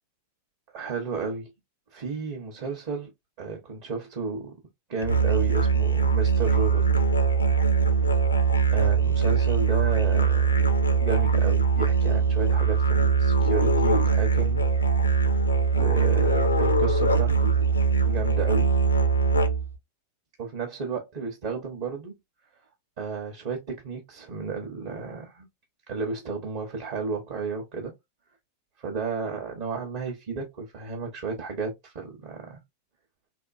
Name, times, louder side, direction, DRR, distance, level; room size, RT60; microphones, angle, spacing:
voice 1, 0.7-1.5 1.9-3.1 3.4-4.5 4.9-6.8 8.7-10.6 10.9-14.6 15.2-15.3 15.8-17.7 18.1-18.7 20.4-22.2 23.0-25.4 25.9-27.9 28.8-32.6, right 4 dB, 50° right, 1.0 m, -33 dB
Musical instrument, 5.0-19.8, right 5 dB, 80° left, 0.5 m, -22 dB
3.5 x 2.6 x 2.5 m
figure-of-eight pair, 90°, 0 cm